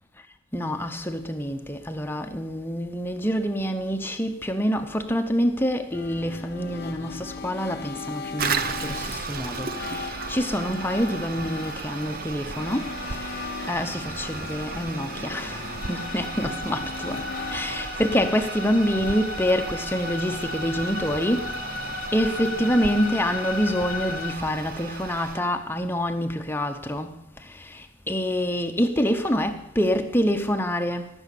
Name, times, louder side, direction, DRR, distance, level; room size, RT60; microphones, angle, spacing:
voice 1, 0.5-21.5 21.8-27.2 27.7-31.1, equal, 10° left, 0.8 m, -26 dB
sound 1, 5.9-19.2, left 5 dB, 50° left, 0.6 m, -38 dB
Toilet flush, 8.4-25.4, right 5 dB, 45° right, 0.7 m, -35 dB
sound 2, 15.8-24.3, left 4 dB, 75° left, 0.9 m, -35 dB
15.0 x 6.3 x 8.3 m
head